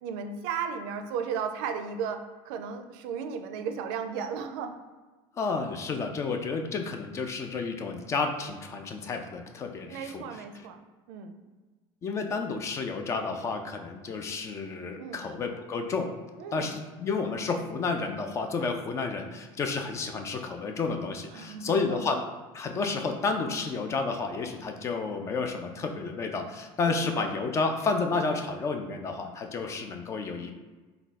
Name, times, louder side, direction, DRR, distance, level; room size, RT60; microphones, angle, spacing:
voice 1, 0.0-4.8 9.9-11.3 15.0-15.3 16.4-16.8 21.3-22.1 26.9-27.3, right 6 dB, 80° right, 7 dB, 0.4 m, -35 dB
voice 2, 5.4-10.4 12.0-16.1 16.5-22.2 22.5-30.5, left 4 dB, 25° left, 5 dB, 0.3 m, -31 dB
3.5 x 2.2 x 4.0 m, 1.3 s
cardioid pair, 150°, 12 cm